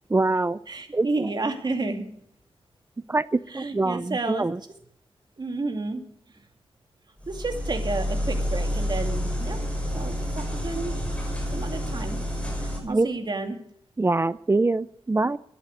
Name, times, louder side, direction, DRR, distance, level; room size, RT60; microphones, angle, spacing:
voice 1, 0.1-0.6 0.9-1.3 3.1-4.6 12.8-13.1 14.0-15.4, right 3 dB, 25° right, 17 dB, 0.5 m, -24 dB
voice 2, 0.7-2.1 3.5-4.5 5.4-6.0 7.3-9.6 9.9-10.9 11.5-12.2 12.6-13.6, right 3 dB, 50° right, 5 dB, 2.5 m, -31 dB
sound 1, 7.2-12.8, equal, 15° left, 6.1 m, -29 dB
13.0 x 11.0 x 6.6 m, 0.71 s
wide cardioid pair, 80°, 10 cm